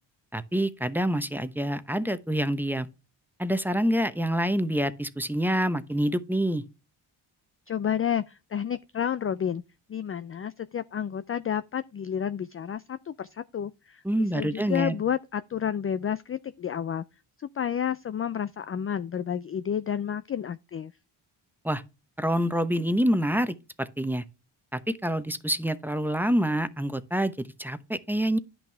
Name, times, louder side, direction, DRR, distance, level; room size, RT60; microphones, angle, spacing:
voice 1, 0.3-2.9 3.4-6.6 14.0-14.9 21.6-21.8 22.2-24.2 24.7-27.3 27.6-28.4, equal, 5° right, 0.8 m, -26 dB
voice 2, 7.7-9.6 9.9-17.0 17.4-20.9, left 8 dB, 30° left, 0.4 m, -30 dB
10.0 x 6.1 x 3.3 m
cardioid pair, 60°, 50 cm